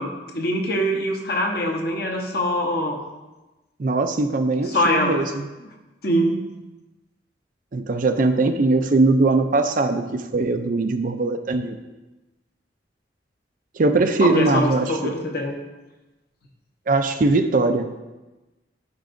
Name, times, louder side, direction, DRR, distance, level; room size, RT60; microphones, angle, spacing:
voice 1, 0.0-3.0 4.7-5.2 6.0-6.5 14.2-15.6, equal, 55° left, 2 dB, 1.0 m, -23 dB
voice 2, 3.8-5.5 7.7-11.8 13.7-15.1 16.9-17.9, right 3 dB, 45° right, 7 dB, 0.4 m, -21 dB
12.5 x 4.6 x 2.6 m, 1.1 s
head